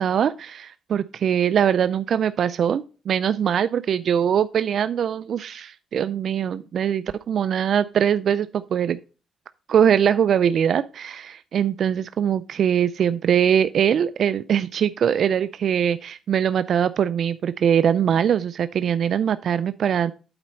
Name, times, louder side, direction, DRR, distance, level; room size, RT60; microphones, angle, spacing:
voice 1, 0.0-9.0 9.7-20.1, right 8 dB, 60° right, 13 dB, 0.3 m, -22 dB
8.8 x 4.2 x 5.1 m, 0.35 s
cardioid pair, 90°, 0 cm